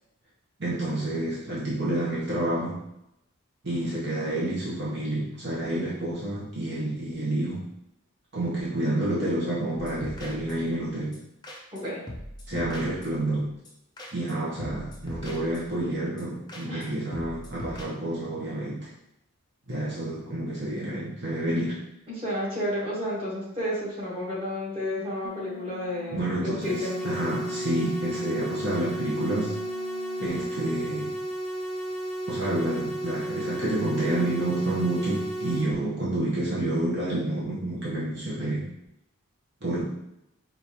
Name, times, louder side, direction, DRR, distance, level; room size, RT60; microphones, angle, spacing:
voice 1, 0.6-2.8 3.6-7.6 8.3-11.2 12.5-13.5 14.1-18.9 19.7-21.8 26.1-29.6 30.2-31.1 32.3-38.7 39.6-39.9, right 1 dB, 50° right, -7 dB, 0.9 m, -29 dB
sound 1, 9.8-10.8 11.1-11.2 11.4-11.8 12.1-13.3 13.7-13.8 14.0-14.3 14.6-15.8 16.2-16.3 16.5-16.9 17.1-17.8, left 1 dB, 20° left, 0.5 m, -41 dB
voice 2, 22.1-27.2, left 1 dB, 25° right, -7 dB, 1.2 m, -31 dB
sound 2, 25.2-30.4, left 7 dB, 85° left, 0.3 m, -44 dB
sound 3, 26.6-35.6, right 1 dB, ahead, 0.8 m, -33 dB
4.9 x 2.5 x 2.8 m, 0.84 s
head